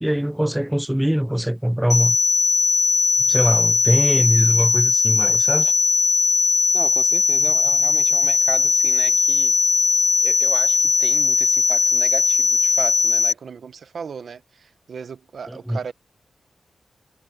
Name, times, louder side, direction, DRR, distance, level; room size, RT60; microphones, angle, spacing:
voice 1, 0.0-2.2 3.3-5.7 15.5-15.8, equal, 5° right, 0.5 m, -22 dB
sound 1, 1.9-13.3, left 4 dB, 50° left, 0.5 m, -18 dB
voice 2, 6.7-9.5 10.2-15.9, right 6 dB, 75° right, 0.8 m, -35 dB
wide cardioid pair, 115°, 0 cm